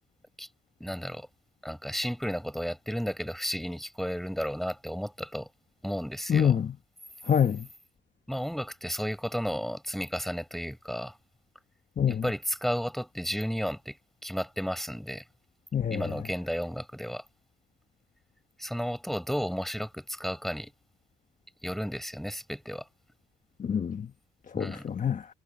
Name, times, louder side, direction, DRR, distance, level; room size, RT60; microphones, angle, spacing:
voice 1, 0.8-1.3 1.6-5.5 5.8-6.6 8.3-11.2 12.1-14.0 14.2-15.2 15.9-17.2 18.6-20.7 21.6-22.8 24.5-24.9, equal, ahead, 5.0 m, -33 dB
voice 2, 6.3-6.7 7.3-7.7 12.0-12.2 15.7-16.1 23.6-24.1 24.5-25.3, left 8 dB, 40° left, 1.1 m, -26 dB
cardioid pair, 90°, 20 cm